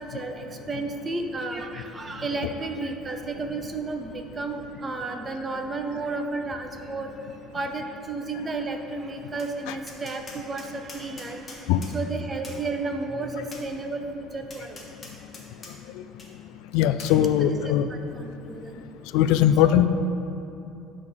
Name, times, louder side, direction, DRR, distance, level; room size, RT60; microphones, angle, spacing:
voice 1, 0.0-14.8 17.4-18.8 19.6-19.8, right 3 dB, 20° right, 5 dB, 0.5 m, -33 dB
Tap, 9.4-9.5 9.9-12.0 12.4-12.6 13.5-13.7 14.5-15.7 16.2-16.3 17.0-17.2, left 3 dB, 20° left, 1.1 m, -43 dB
voice 2, 16.7-17.8 19.1-19.9, left 11 dB, 85° left, 11 dB, 0.3 m, -19 dB
8.8 x 3.7 x 6.2 m, 2.9 s
cardioid pair, 160°, 0 cm